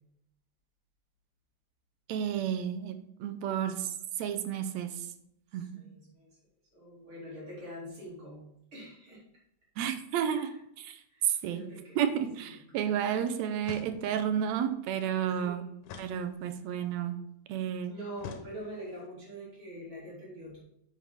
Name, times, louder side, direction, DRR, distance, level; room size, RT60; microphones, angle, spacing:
voice 1, 2.1-5.1 5.5-5.9 9.8-11.7 11.9-15.6 16.0-17.2 17.5-17.9, right 9 dB, 75° right, 9 dB, 1.8 m, -32 dB
voice 2, 5.5-6.4 6.7-8.4 8.7-9.2 10.1-10.5 11.1-12.1 12.4-12.9 15.4-15.7 17.9-20.6, equal, 45° right, -6 dB, 3.4 m, -45 dB
sound 1, 13.6-14.4 15.8-16.8 18.2-19.0, left 6 dB, 90° left, 2.3 m, -47 dB
9.6 x 5.6 x 3.6 m, 0.77 s
omnidirectional pair, 3.4 m